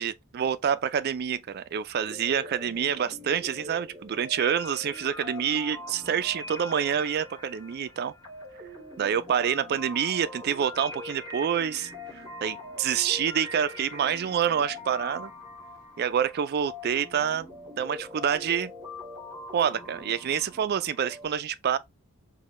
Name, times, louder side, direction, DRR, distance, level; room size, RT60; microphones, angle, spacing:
voice 1, 0.0-8.1 9.0-15.3 16.0-17.5 17.8-18.7 19.5-21.8, right 8 dB, 45° right, 0.3 m, -27 dB
sound 1, 2.1-21.3, left 2 dB, 20° right, 2.2 m, -43 dB
4.7 x 2.2 x 3.1 m
head